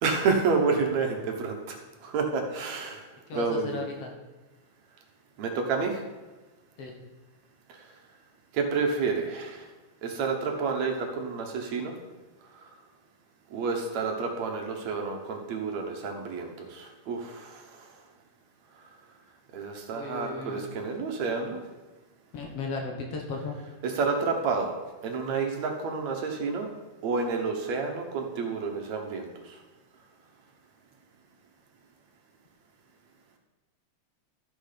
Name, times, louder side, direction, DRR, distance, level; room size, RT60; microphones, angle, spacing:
voice 1, 0.0-3.1 3.3-3.8 5.4-6.0 8.5-9.6 10.0-11.9 12.5-12.6 13.5-17.9 19.5-21.6 23.8-24.7 25.0-26.7 27.0-29.6, right 4 dB, 70° right, 3 dB, 2.3 m, -29 dB
voice 2, 3.3-4.1 6.8-7.0 19.9-20.6 22.3-23.6, left 4 dB, 60° left, 1 dB, 2.1 m, -35 dB
12.5 x 6.2 x 5.1 m, 1.2 s
omnidirectional pair, 3.4 m